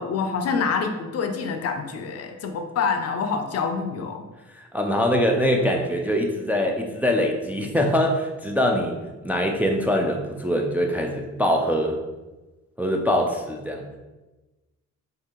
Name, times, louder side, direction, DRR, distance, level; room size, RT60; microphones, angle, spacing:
voice 1, 0.0-4.2, left 5 dB, 55° left, 6 dB, 0.5 m, -26 dB
voice 2, 4.5-9.0 9.2-12.0 12.8-13.9, equal, 5° right, 2 dB, 0.3 m, -23 dB
2.8 x 2.7 x 3.7 m, 1.1 s
cardioid pair, 90°, 30 cm